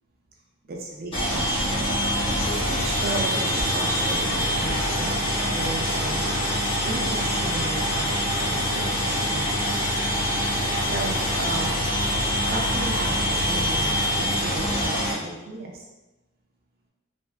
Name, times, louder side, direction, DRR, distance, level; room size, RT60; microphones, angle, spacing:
voice 1, 0.7-9.5 10.9-11.9 12.5-15.7, right 2 dB, 45° right, -1 dB, 0.4 m, -35 dB
sound 1, 1.1-15.1, equal, 25° left, 0.7 m, -25 dB
3.3 x 2.5 x 2.3 m, 1.0 s
head